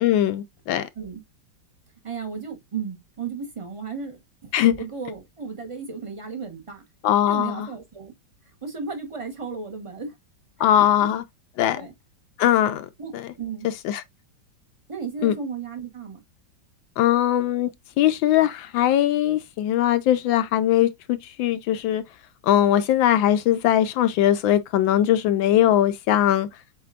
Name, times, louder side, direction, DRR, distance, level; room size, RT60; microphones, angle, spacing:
voice 1, 0.0-0.9 4.5-4.7 7.0-7.7 10.6-11.2 11.6-11.8 12.4-12.9 13.1-13.2 13.8-14.0 15.2-15.3 17.0-17.7 18.0-22.0 22.4-26.5, left 12 dB, 80° left, 1.3 m, -20 dB
voice 2, 2.0-4.5 4.8-6.8 7.2-8.1 8.6-10.2 10.6-10.9 11.7-11.9 13.0-13.7 14.9-16.2, right 5 dB, 20° right, 0.9 m, -34 dB
7.4 x 2.7 x 2.4 m
omnidirectional pair, 2.1 m